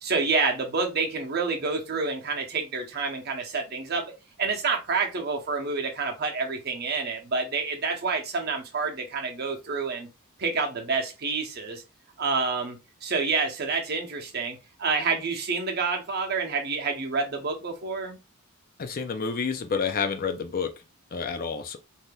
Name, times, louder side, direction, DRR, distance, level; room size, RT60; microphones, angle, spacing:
voice 1, 0.0-4.1 4.4-10.1 10.4-11.8 12.2-18.2, right 4 dB, 45° right, 0.8 m, -28 dB
voice 2, 18.8-20.7 21.1-21.8, left 5 dB, 40° left, 0.4 m, -29 dB
3.4 x 2.7 x 2.2 m
head